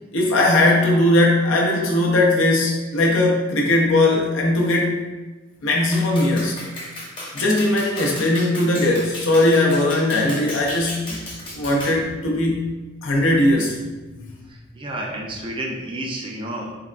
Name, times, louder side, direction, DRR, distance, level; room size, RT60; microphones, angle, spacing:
voice 1, 0.1-5.0 5.6-6.5 7.3-11.2 11.5-12.6 13.0-13.8 14.2-14.3, left 1 dB, 80° left, -1 dB, 0.6 m, -19 dB
Clapping, 5.9-12.0, left 1 dB, 25° left, 0.7 m, -35 dB
voice 2, 14.5-16.8, right 1 dB, 25° right, 0 dB, 0.3 m, -31 dB
3.4 x 2.1 x 2.3 m, 1.2 s
head